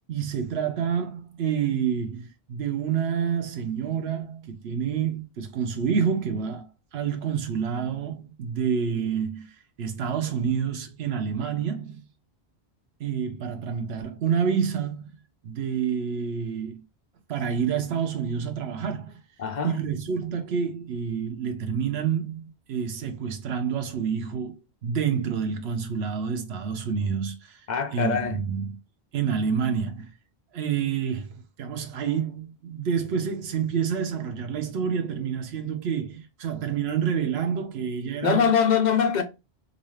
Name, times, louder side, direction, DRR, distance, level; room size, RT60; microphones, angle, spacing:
voice 1, 0.1-6.7 6.9-9.5 9.8-12.0 13.0-15.2 15.4-16.8 17.3-19.2 19.6-22.4 22.7-24.5 24.8-27.6 27.9-28.8 29.1-30.1 30.5-38.5, right 7 dB, 80° right, 1.0 m, -28 dB
voice 2, 19.4-19.8 27.7-28.4 38.2-39.2, left 6 dB, 50° left, 0.8 m, -23 dB
3.9 x 2.6 x 3.1 m
omnidirectional pair, 1.1 m